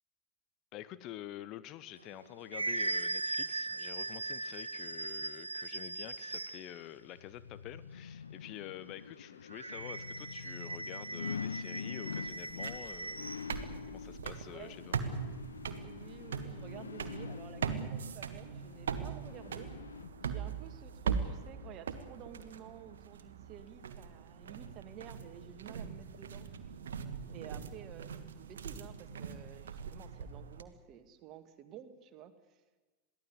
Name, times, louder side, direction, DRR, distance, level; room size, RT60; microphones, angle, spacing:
voice 1, 0.7-13.4 13.9-15.0, left 12 dB, 40° left, 15 dB, 0.9 m, -48 dB
sound 1, 2.0-6.8 9.5-13.5, right 2 dB, 80° right, 0.7 m, -39 dB
sound 2, 6.7-20.6 21.0-21.1, left 6 dB, 70° left, 0.7 m, -46 dB
sound 3, 12.2-30.6, right 6 dB, 65° right, 1.6 m, -41 dB
voice 2, 15.8-19.7 20.2-26.5 27.3-28.1 28.4-32.6, right 10 dB, 35° right, 9 dB, 2.1 m, -52 dB
22.5 x 15.5 x 9.7 m, 1.2 s
figure-of-eight pair, 90°, 0 cm